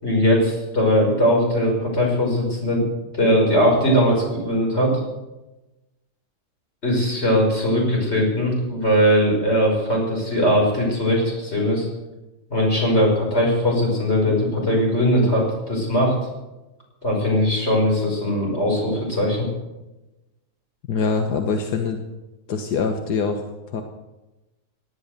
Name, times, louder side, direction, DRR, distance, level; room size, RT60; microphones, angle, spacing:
voice 1, 0.0-2.8 3.1-4.9 6.8-11.9 12.5-16.1 17.0-19.5, equal, 40° left, -1 dB, 6.2 m, -20 dB
voice 2, 20.9-22.0 22.5-23.8, left 5 dB, 85° left, 5 dB, 1.8 m, -24 dB
18.0 x 11.5 x 6.8 m, 1.0 s
omnidirectional pair, 1.7 m